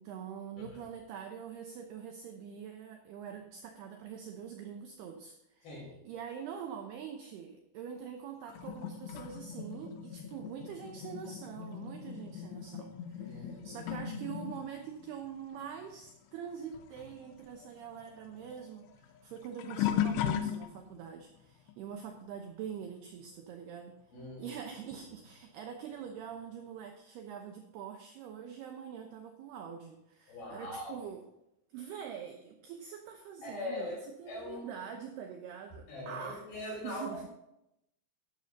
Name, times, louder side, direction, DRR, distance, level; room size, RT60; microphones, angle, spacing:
voice 1, 0.0-5.7 6.1-23.9 24.4-31.2 31.7-37.2, right 8 dB, 80° right, 3 dB, 2.4 m, -44 dB
sound 1, 8.5-16.5 16.7-21.1 21.7-22.0 24.3-24.4 25.2-25.3, left 9 dB, 80° left, 2.5 m, -38 dB
voice 2, 13.2-13.8 24.1-24.5 30.3-31.0 33.4-34.0 34.3-34.7 35.9-37.3, left 2 dB, 50° left, -4 dB, 7.2 m, -41 dB
14.5 x 11.5 x 2.8 m, 0.85 s
omnidirectional pair, 5.7 m